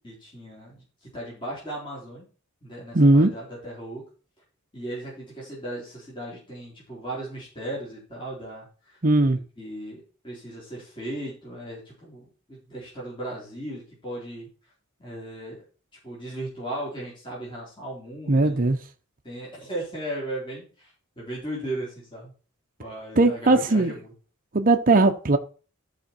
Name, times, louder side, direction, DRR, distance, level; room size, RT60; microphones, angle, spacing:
voice 1, 0.0-0.8 1.1-2.3 2.6-4.0 4.7-9.0 9.6-14.5 15.0-15.6 16.0-18.7 19.2-20.9 21.2-22.3 22.8-24.1, right 1 dB, 25° left, 4.3 m, -36 dB
voice 2, 2.9-3.3 9.0-9.4 18.3-18.8 23.2-24.0 24.5-25.4, right 2 dB, 40° right, 0.8 m, -18 dB
13.5 x 5.1 x 4.5 m
head